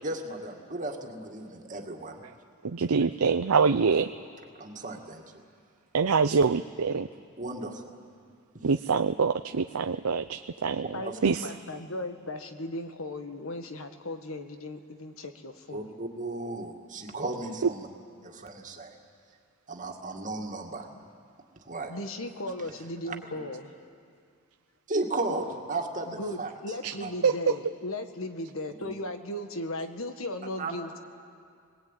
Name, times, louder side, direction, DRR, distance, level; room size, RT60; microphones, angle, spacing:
voice 1, 0.0-2.2 4.6-5.2 7.4-7.9 11.0-11.2 15.7-17.9 18.2-19.0 19.7-20.9 21.7-22.0 23.1-23.2 24.9-26.5 27.0-27.1 28.8-28.9 30.6-30.7, right 2 dB, 35° right, 2 dB, 2.2 m, -35 dB
voice 2, 2.6-4.1 5.9-7.1 8.6-10.9 11.2-11.5 26.8-26.9 27.2-27.3, right 5 dB, 85° right, 8 dB, 0.6 m, -25 dB
voice 3, 10.9-15.9 21.9-23.7 26.1-31.0, left 1 dB, 70° left, 7 dB, 1.7 m, -37 dB
27.5 x 21.0 x 9.2 m, 2.3 s
head